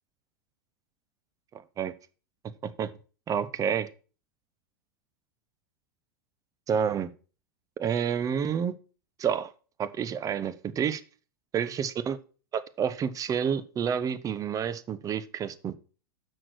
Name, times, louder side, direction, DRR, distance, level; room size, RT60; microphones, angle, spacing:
voice 1, 1.5-1.9 2.8-2.9 3.3-3.9 6.7-7.1 7.8-8.7 9.2-9.5 9.8-11.0 11.5-12.2 12.5-15.8, right 7 dB, 30° right, 14 dB, 0.9 m, -29 dB
6.5 x 6.2 x 6.3 m, 0.36 s
hypercardioid pair, 100°, 12 cm